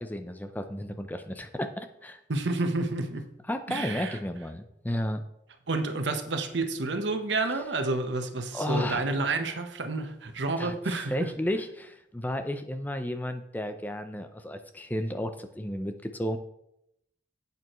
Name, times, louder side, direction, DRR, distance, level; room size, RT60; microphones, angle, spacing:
voice 1, 0.0-2.2 3.5-5.2 8.5-9.1 10.6-10.7 11.1-16.4, left 1 dB, 10° left, 8 dB, 0.5 m, -33 dB
voice 2, 2.3-3.3 3.7-4.2 5.7-11.3, right 3 dB, 75° right, 7 dB, 1.0 m, -30 dB
11.0 x 8.4 x 3.1 m, 0.81 s
head